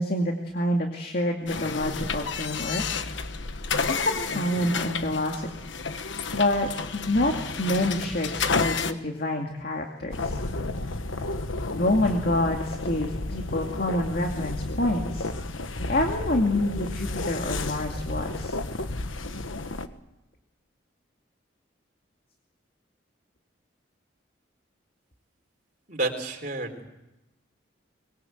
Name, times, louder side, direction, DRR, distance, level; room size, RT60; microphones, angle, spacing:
voice 1, 0.0-2.8 3.9-5.5 6.3-7.3 7.6-10.4 11.8-15.3 15.9-18.6, left 1 dB, 50° left, 2 dB, 2.3 m, -27 dB
sound 1, 1.5-8.9, left 5 dB, 70° left, 1.2 m, -30 dB
sound 2, 10.1-19.9, left 2 dB, 90° left, 1.3 m, -32 dB
voice 2, 25.9-26.9, right 2 dB, 45° right, 3 dB, 3.8 m, -30 dB
24.5 x 21.5 x 8.0 m, 0.95 s
head